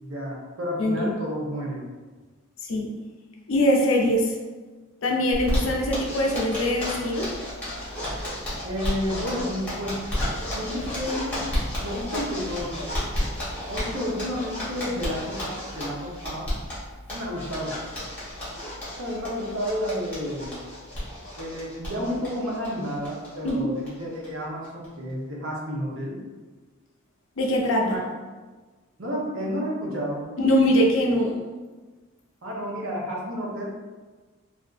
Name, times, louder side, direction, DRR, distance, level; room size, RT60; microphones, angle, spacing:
voice 1, 0.0-1.9 8.6-10.0 10.4-11.4 11.8-13.0 13.7-16.5 17.1-17.8 19.0-20.6 21.4-26.2 27.8-28.1 29.0-30.2 32.4-33.7, equal, 70° right, -3 dB, 0.8 m, -31 dB
voice 2, 0.8-1.2 2.6-2.9 3.5-4.3 5.0-7.3 23.4-23.7 27.4-28.0 30.4-31.4, left 1 dB, 65° left, -1 dB, 0.6 m, -22 dB
Zipper (clothing), 5.3-23.5 23.8-23.9 24.2-24.3 24.6-25.1, left 1 dB, 5° left, 1.2 m, -32 dB
3.3 x 2.5 x 2.5 m, 1.3 s
head